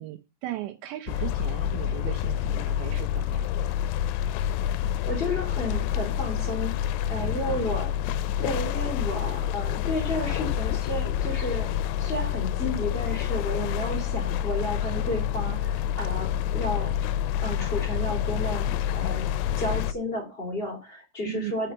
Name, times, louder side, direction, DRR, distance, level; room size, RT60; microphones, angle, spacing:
voice 1, 0.0-3.5 7.2-7.6 21.2-21.5, right 15 dB, 80° right, 8 dB, 2.6 m, -37 dB
sound 1, 1.1-19.9, left 10 dB, 80° left, 3.0 m, -28 dB
voice 2, 5.1-8.0 8.4-11.7 12.0-16.9 17.4-19.3 19.6-21.7, left 1 dB, 25° left, 1 dB, 1.3 m, -32 dB
6.8 x 6.3 x 6.7 m, 0.28 s
omnidirectional pair, 5.9 m